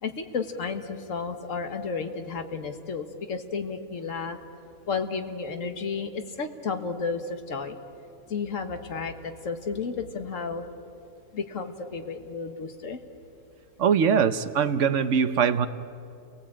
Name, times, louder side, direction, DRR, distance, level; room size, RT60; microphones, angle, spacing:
voice 1, 0.0-4.4 4.9-7.8 8.3-10.7 11.3-13.0, left 5 dB, 60° left, 7 dB, 1.8 m, -32 dB
voice 2, 13.8-15.7, right 7 dB, 60° right, 11 dB, 1.2 m, -22 dB
29.5 x 20.0 x 8.8 m, 2.6 s
omnidirectional pair, 1.5 m